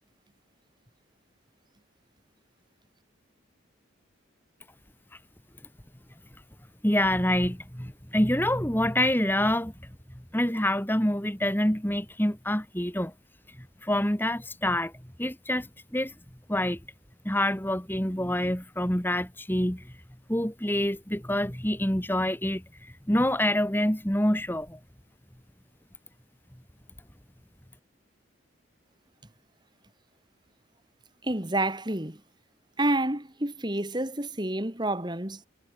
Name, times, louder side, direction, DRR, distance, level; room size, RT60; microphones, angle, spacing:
voice 1, 6.8-9.7 10.3-13.1 13.8-14.9 15.2-15.7 15.9-16.1 16.5-16.8 17.2-19.9 20.3-22.6 23.1-24.8, left 1 dB, 10° left, 2.4 m, -26 dB
voice 2, 31.2-32.2 32.8-35.4, right 1 dB, 20° right, 2.3 m, -29 dB
head